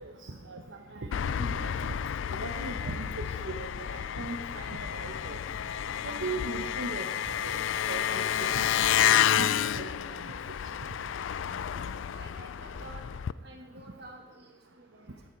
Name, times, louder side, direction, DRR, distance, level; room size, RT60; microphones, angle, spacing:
voice 1, 0.0-0.6 0.9-1.7 2.3-5.4 6.0-10.3, right 2 dB, 70° right, 3 dB, 1.0 m, -39 dB
Engine, 1.1-13.3, left 9 dB, 65° left, 0.3 m, -30 dB
voice 2, 11.9-13.1 13.4-15.2, right 1 dB, 55° right, 1 dB, 2.3 m, -50 dB
15.0 x 11.5 x 4.5 m, 1.4 s
head